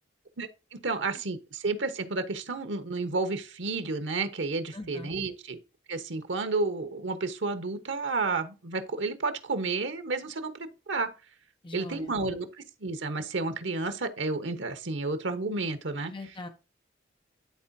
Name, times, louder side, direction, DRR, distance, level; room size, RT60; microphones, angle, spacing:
voice 1, 0.8-5.6 5.9-10.5 10.9-11.1 11.7-12.5 12.8-16.1, right 3 dB, 85° right, 1.1 m, -31 dB
voice 2, 4.7-5.1 11.6-12.1 16.0-16.5, left 1 dB, 25° left, 1.0 m, -41 dB
11.5 x 4.0 x 2.7 m
head